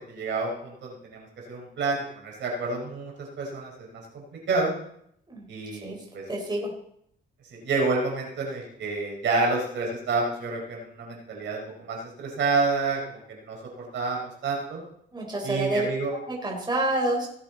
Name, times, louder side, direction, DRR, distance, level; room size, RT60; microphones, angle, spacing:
voice 1, 0.1-4.7 5.5-6.2 7.5-14.8 15.4-16.1, right 3 dB, 70° right, -1 dB, 4.5 m, -29 dB
voice 2, 6.3-6.7 15.1-15.9 16.3-17.3, right 1 dB, 20° right, -1 dB, 4.2 m, -28 dB
17.5 x 8.3 x 4.1 m, 0.71 s
cardioid pair, 90°, 20 cm